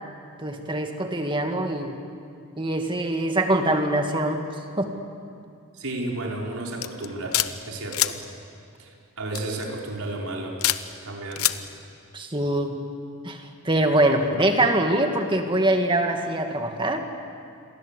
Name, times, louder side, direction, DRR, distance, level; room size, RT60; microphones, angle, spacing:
voice 1, 0.4-2.0 2.6-4.4 4.8-4.9 12.1-12.8 13.2-17.0, right 1 dB, 20° right, 4 dB, 2.1 m, -23 dB
voice 2, 5.7-8.3 8.8-10.6 11.0-11.5, right 2 dB, 80° right, -1 dB, 4.8 m, -33 dB
sound 1, 6.8-7.5 7.9-8.1 9.3-9.6 10.6-10.8 11.3-11.6, left 13 dB, 80° left, 1.0 m, -23 dB
29.0 x 22.5 x 8.4 m, 2.4 s
head